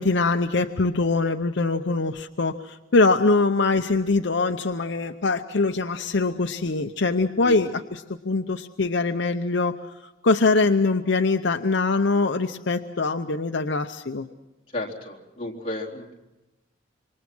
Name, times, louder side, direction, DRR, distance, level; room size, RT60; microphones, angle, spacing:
voice 1, 0.0-9.8 10.2-14.3, left 3 dB, 60° left, 6 dB, 0.7 m, -23 dB
voice 2, 14.7-16.1, left 1 dB, 30° left, -2 dB, 3.6 m, -33 dB
27.0 x 24.0 x 6.1 m, 1.0 s
head